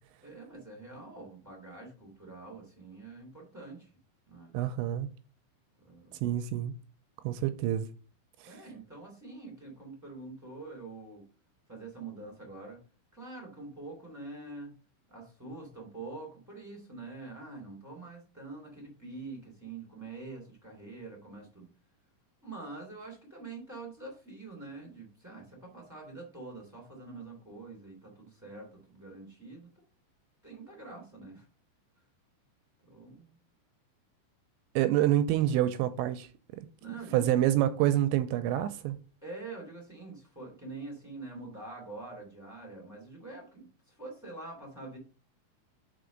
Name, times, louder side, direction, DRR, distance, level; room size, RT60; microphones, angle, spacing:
voice 1, 0.2-3.9 4.3-4.5 5.8-6.2 8.4-11.2 11.7-12.8 13.1-14.7 15.1-21.7 22.4-29.7 30.4-31.4 32.8-33.4 36.8-37.3 39.2-45.0, right 3 dB, 5° right, 1.7 m, -45 dB
voice 2, 4.5-5.1 6.2-6.7 7.2-7.9 8.4-8.5 34.8-36.3 37.1-39.0, right 12 dB, 85° right, 2.7 m, -27 dB
6.0 x 4.8 x 5.1 m
omnidirectional pair, 5.4 m